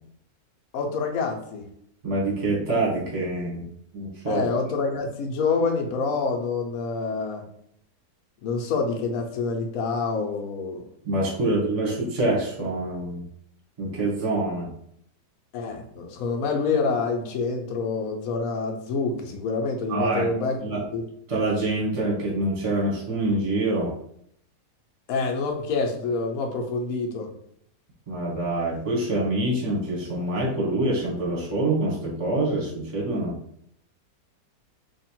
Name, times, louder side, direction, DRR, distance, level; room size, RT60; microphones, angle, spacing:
voice 1, 0.7-1.7 4.3-7.4 8.4-10.8 11.4-11.5 15.5-20.6 20.9-21.0 25.1-27.3, left 4 dB, 60° left, 3 dB, 1.0 m, -27 dB
voice 2, 2.0-4.4 11.0-13.3 13.8-14.7 19.9-20.2 20.6-20.8 21.3-23.9 28.1-33.4, right 2 dB, 25° right, -3 dB, 0.9 m, -26 dB
3.4 x 2.4 x 4.4 m, 0.69 s
omnidirectional pair, 1.9 m